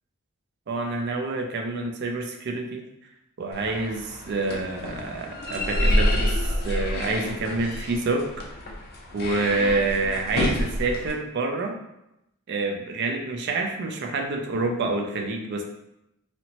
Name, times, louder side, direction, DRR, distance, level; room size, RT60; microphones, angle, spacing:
voice 1, 0.7-2.9 3.4-8.3 9.1-11.7 12.5-15.6, right 3 dB, 55° right, 3 dB, 0.4 m, -27 dB
sound 1, 3.5-11.1, left 1 dB, 50° left, 0.4 m, -28 dB
2.8 x 2.1 x 2.8 m, 0.84 s
head